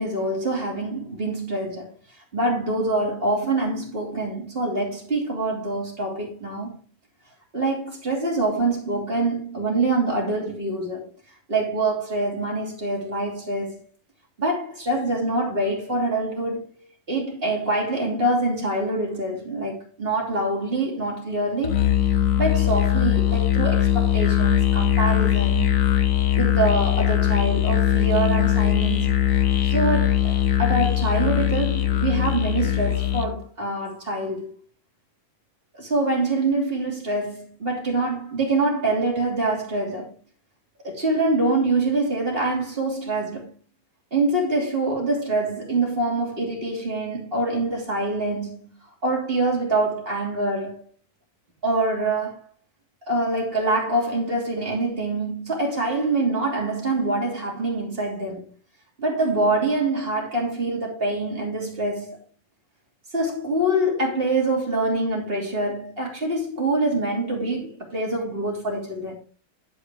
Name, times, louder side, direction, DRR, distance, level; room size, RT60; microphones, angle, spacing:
voice 1, 0.0-1.9 2.3-6.7 7.5-11.1 11.5-13.8 14.4-16.6 17.1-21.9 22.4-25.9 26.4-29.2 29.6-30.3 30.6-34.5 35.7-40.1 40.8-43.5 44.1-48.7 49.0-50.8 51.6-52.4 53.1-58.4 59.0-62.2 63.1-69.2, right 2 dB, 30° right, 3.3 m, -25 dB
Musical instrument, 21.6-33.4, left 12 dB, 55° left, 1.2 m, -21 dB
11.5 x 4.9 x 4.8 m
omnidirectional pair, 2.1 m